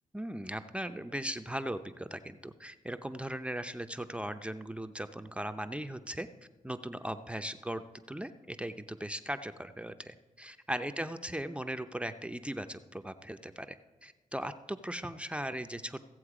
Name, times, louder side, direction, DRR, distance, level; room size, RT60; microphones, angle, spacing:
voice 1, 0.1-6.3 6.6-7.8 8.1-13.8 14.0-16.0, right 1 dB, 10° right, 9 dB, 0.7 m, -38 dB
16.0 x 7.7 x 4.9 m, 1.3 s
cardioid pair, 60°, 14 cm